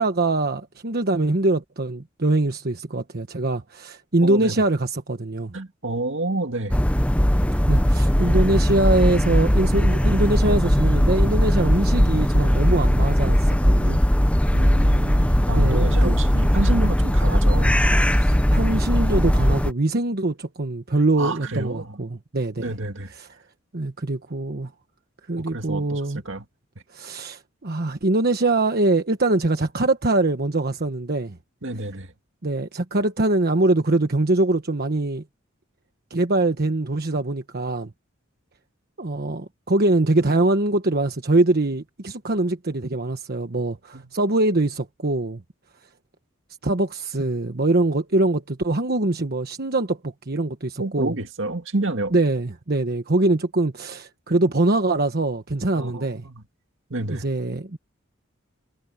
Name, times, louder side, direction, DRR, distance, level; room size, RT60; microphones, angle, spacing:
voice 1, 0.0-5.5 7.7-14.0 15.5-16.1 18.1-22.7 23.1-23.3 23.7-24.7 25.3-26.2 26.9-31.4 32.4-35.2 36.1-37.9 39.0-45.4 46.6-51.1 52.1-56.2 57.1-57.8, right 2 dB, 50° right, 1.2 m, -23 dB
voice 2, 4.2-4.6 5.5-6.8 14.5-17.8 21.2-22.0 22.6-23.1 25.4-26.4 31.6-32.1 43.9-44.1 50.8-52.1 55.7-56.4 56.9-57.3, right 2 dB, 70° right, 2.2 m, -29 dB
sound 1, 6.7-19.7, equal, 5° left, 0.9 m, -19 dB
head